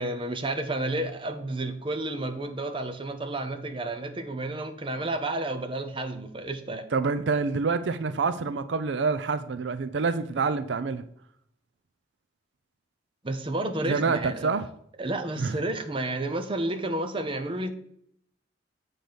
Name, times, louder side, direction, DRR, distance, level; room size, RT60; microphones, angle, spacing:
voice 1, 0.0-6.8 13.2-14.5 15.0-17.7, right 2 dB, 30° right, 6 dB, 0.8 m, -31 dB
voice 2, 6.9-11.0 13.8-14.7 15.4-15.6, right 4 dB, 75° right, 12 dB, 0.5 m, -27 dB
7.8 x 3.9 x 6.7 m, 0.69 s
head